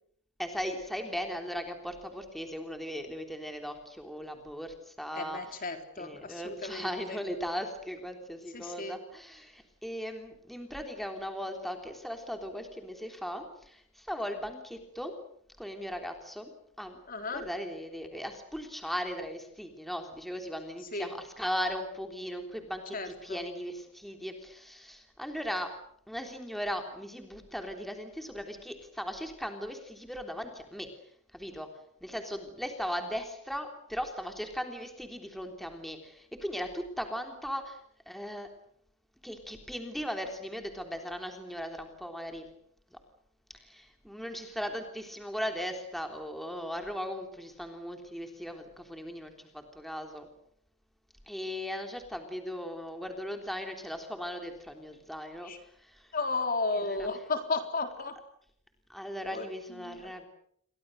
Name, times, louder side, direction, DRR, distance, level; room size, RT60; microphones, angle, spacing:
voice 1, 0.4-5.4 6.0-15.1 15.6-16.5 16.8-17.0 17.3-25.7 26.1-30.9 31.3-31.7 32.0-37.8 38.1-38.5 39.2-42.5 43.5-50.3 51.3-55.5 55.8-56.1 56.8-57.0 58.9-60.3, equal, ahead, 4 dB, 3.4 m, -38 dB
voice 2, 5.1-7.2 8.5-9.0 17.1-17.5 20.9-21.1 22.9-23.4 55.4-55.6 56.1-58.1 59.3-60.1, left 3 dB, 40° left, 6 dB, 3.9 m, -34 dB
29.5 x 24.0 x 6.7 m, 0.69 s
head